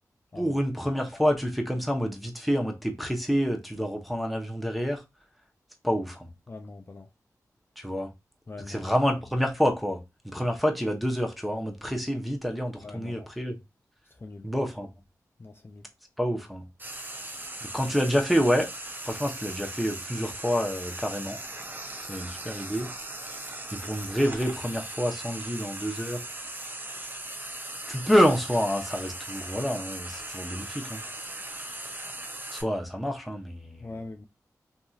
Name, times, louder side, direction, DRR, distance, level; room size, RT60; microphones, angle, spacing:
voice 1, 0.4-5.0 5.8-6.3 7.8-8.1 8.7-13.6 14.4-14.9 16.2-16.6 17.6-18.7 19.0-21.4 22.1-22.9 23.7-26.3 27.9-31.0 32.5-33.9, equal, ahead, 0.9 m, -28 dB
voice 2, 6.5-7.1 8.5-8.9 12.8-13.3 14.0-14.5 15.4-15.9 33.8-34.3, left 3 dB, 35° left, 0.4 m, -42 dB
Frying (food), 16.8-32.6, right 2 dB, 30° right, 0.7 m, -39 dB
2.8 x 2.6 x 2.4 m
cardioid pair, 50°, 7 cm